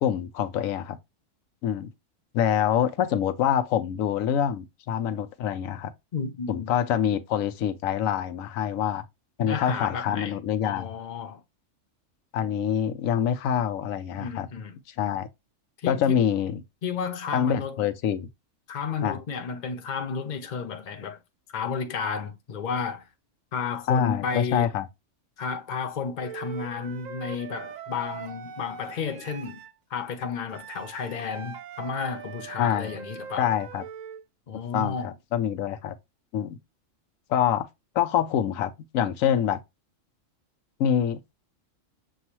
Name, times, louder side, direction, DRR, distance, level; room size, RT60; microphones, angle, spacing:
voice 1, 0.0-1.0 1.6-1.9 2.3-5.9 6.5-9.0 9.4-10.9 12.3-14.5 15.0-15.3 15.9-16.6 17.3-18.3 19.0-19.2 23.9-24.9 32.6-32.9 33.4-33.8 34.7-35.9 36.3-36.6 37.3-37.7 37.9-39.6 40.8-41.2, left 9 dB, 90° left, 1.0 m, -25 dB
voice 2, 6.1-6.7 9.4-11.4 14.2-14.8 15.8-16.3 16.8-17.9 18.7-21.2 21.5-23.0 23.5-24.7 25.4-29.6 29.9-33.6 34.5-35.1, left 5 dB, 45° left, 0.8 m, -32 dB
Wind instrument woodwind instrument, 26.2-29.7 30.5-34.2, right 8 dB, 85° right, 1.0 m, -41 dB
6.8 x 2.4 x 2.9 m
omnidirectional pair, 1.4 m